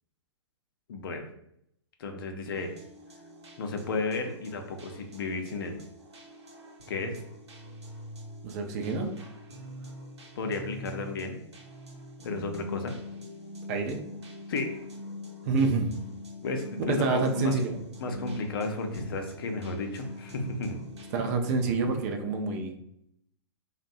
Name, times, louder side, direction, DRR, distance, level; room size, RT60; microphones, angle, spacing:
voice 1, 0.9-1.3 2.0-2.7 3.6-5.8 6.9-7.1 10.4-11.4 12.2-12.9 14.5-14.8 16.4-17.5 18.0-20.8, left 3 dB, 55° left, 5 dB, 0.5 m, -33 dB
sound 1, 2.5-21.3, left 1 dB, 75° right, 0.8 m, -44 dB
voice 2, 8.4-9.1 13.7-14.0 15.4-15.9 16.9-17.7 21.1-22.7, right 4 dB, 35° right, 4 dB, 0.4 m, -27 dB
2.5 x 2.1 x 2.6 m, 0.74 s
figure-of-eight pair, 115°, 14 cm